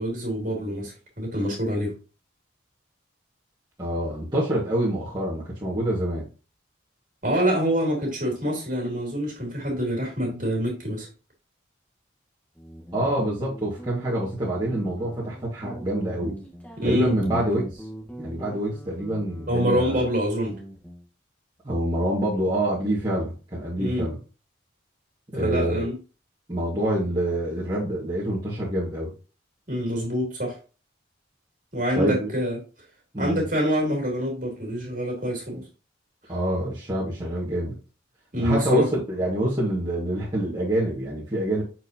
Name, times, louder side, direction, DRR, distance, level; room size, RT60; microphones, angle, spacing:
voice 1, 0.0-1.9 7.2-11.1 16.8-17.4 19.5-20.5 23.8-24.1 25.3-26.0 29.7-30.6 31.7-32.6 33.2-35.6 38.3-38.9, equal, 40° right, 0 dB, 3.0 m, -26 dB
voice 2, 3.8-6.3 12.9-16.4 16.8-17.9 18.2-20.0 21.6-24.2 25.3-25.9 26.5-29.1 32.0-32.3 33.1-33.4 36.3-37.8 38.4-41.6, right 1 dB, 20° right, -9 dB, 1.9 m, -26 dB
Guitar, 12.6-21.0, equal, 5° left, 1.4 m, -40 dB
7.7 x 4.5 x 2.9 m, 0.34 s
head